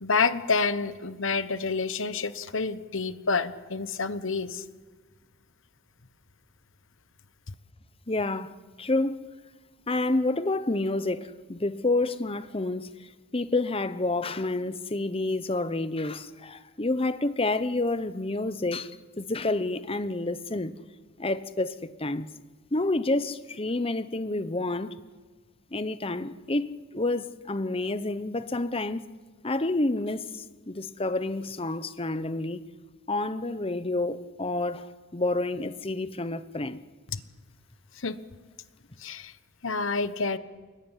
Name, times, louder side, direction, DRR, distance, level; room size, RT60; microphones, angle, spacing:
voice 1, 0.0-4.6 37.1-37.2 38.0-38.2 39.0-39.3 39.6-40.4, left 4 dB, 60° left, 1.2 m, -28 dB
voice 2, 8.1-9.3 9.9-20.7 21.2-22.3 22.7-24.9 25.7-29.0 29.4-32.6 33.1-36.8, left 2 dB, 25° left, 0.9 m, -29 dB
24.5 x 21.5 x 10.0 m
head